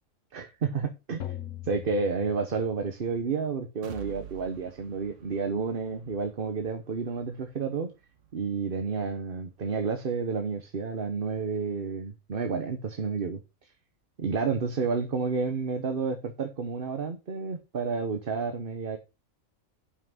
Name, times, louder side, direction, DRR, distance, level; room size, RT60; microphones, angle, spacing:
voice 1, 0.3-1.3 1.6-7.9 8.3-13.4 14.2-19.0, right 5 dB, 45° right, 1.1 m, -30 dB
sound 1, 1.2-3.1, left 12 dB, 65° left, 1.2 m, -41 dB
sound 2, 3.8-11.6 12.0-12.1 12.5-12.6, right 9 dB, 65° right, 1.3 m, -51 dB
8.6 x 5.8 x 5.4 m
omnidirectional pair, 1.4 m